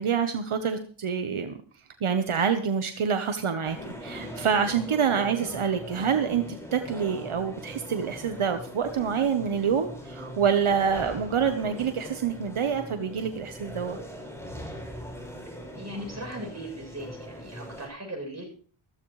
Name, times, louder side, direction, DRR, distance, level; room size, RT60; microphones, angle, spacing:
voice 1, 0.0-1.6 2.0-14.0, right 7 dB, 80° right, 7 dB, 1.1 m, -27 dB
sound 1, 3.6-17.9, equal, 5° left, 5.1 m, -41 dB
voice 2, 15.5-18.5, right 1 dB, 35° right, 1 dB, 7.7 m, -39 dB
15.0 x 14.5 x 3.2 m, 0.43 s
wide cardioid pair, 65°, 49 cm